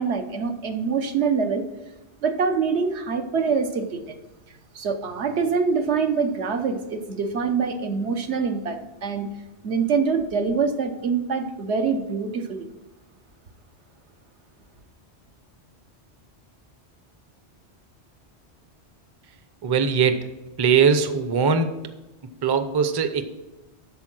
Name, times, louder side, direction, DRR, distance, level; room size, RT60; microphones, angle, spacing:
voice 1, 0.0-1.7 2.2-4.2 4.7-9.3 9.6-12.7, right 5 dB, 80° right, 6 dB, 1.2 m, -25 dB
voice 2, 19.6-20.3 20.6-21.8 22.2-23.2, right 6 dB, 30° right, 9 dB, 0.5 m, -21 dB
12.5 x 4.5 x 6.1 m, 1.0 s
omnidirectional pair, 1.1 m